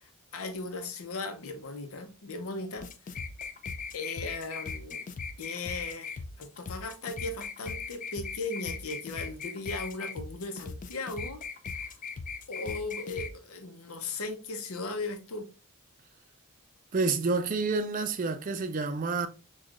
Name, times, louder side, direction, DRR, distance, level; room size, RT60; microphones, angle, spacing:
voice 1, 0.0-2.9 3.9-5.0 5.4-11.4 11.8-11.9 12.5-15.5, left 3 dB, 85° left, 0.7 m, -37 dB
sound 1, 2.8-13.3, left 5 dB, 35° left, 0.3 m, -39 dB
voice 2, 16.9-19.3, right 3 dB, 40° right, 0.4 m, -29 dB
6.2 x 2.3 x 2.4 m
head